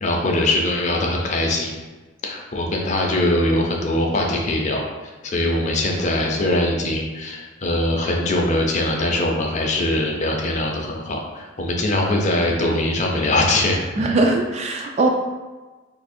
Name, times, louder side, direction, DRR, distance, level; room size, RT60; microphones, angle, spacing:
voice 1, 0.0-1.7 2.2-4.8 5.2-13.8, left 1 dB, 35° left, 0 dB, 0.5 m, -22 dB
voice 2, 14.0-15.1, right 2 dB, 35° right, 2 dB, 0.3 m, -20 dB
2.8 x 2.6 x 4.1 m, 1.2 s
head